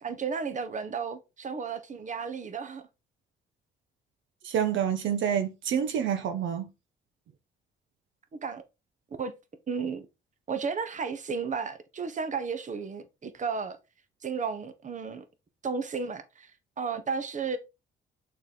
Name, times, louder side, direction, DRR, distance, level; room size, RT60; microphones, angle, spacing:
voice 1, 0.0-2.9 8.3-8.6 9.2-9.3 9.7-10.1 10.5-13.8 14.2-15.2 15.6-16.5 16.8-17.6, right 5 dB, 40° right, 1.2 m, -33 dB
voice 2, 4.4-6.7, right 8 dB, 75° right, 1.0 m, -28 dB
6.4 x 4.8 x 3.9 m
cardioid pair, 90°, 20 cm